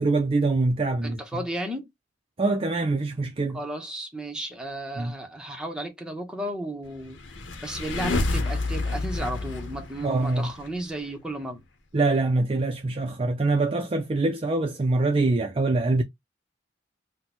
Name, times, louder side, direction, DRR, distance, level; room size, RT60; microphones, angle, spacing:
voice 1, 0.0-1.2 2.4-3.6 5.0-5.1 10.0-10.5 11.9-16.0, right 2 dB, 30° right, 0.4 m, -24 dB
voice 2, 1.0-1.9 3.5-7.2 7.6-11.6, right 1 dB, 5° right, 0.8 m, -34 dB
sound 1, 7.1-10.7, left 2 dB, 85° left, 0.8 m, -29 dB
2.9 x 2.2 x 4.1 m
head